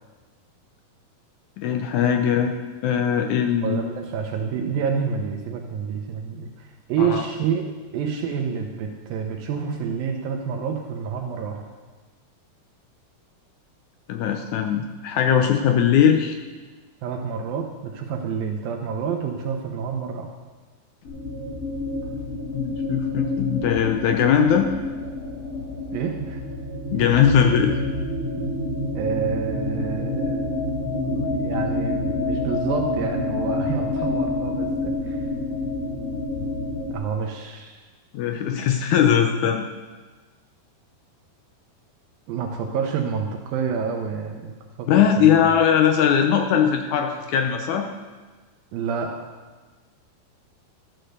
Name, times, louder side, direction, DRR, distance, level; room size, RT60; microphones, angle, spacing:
voice 1, 1.6-2.5 2.8-3.8 7.0-7.2 14.1-16.4 22.5-24.7 26.9-27.8 38.1-39.6 44.9-47.8, left 8 dB, 75° left, 4 dB, 1.8 m, -20 dB
voice 2, 3.6-7.6 7.9-11.6 17.0-20.3 25.9-26.4 29.0-30.4 30.9-35.2 36.9-37.8 42.3-45.4 48.7-49.1, right 6 dB, 80° right, 2 dB, 2.6 m, -28 dB
sound 1, 21.0-36.9, left 2 dB, 45° left, 3.9 m, -28 dB
12.5 x 8.2 x 6.7 m, 1.3 s
omnidirectional pair, 4.2 m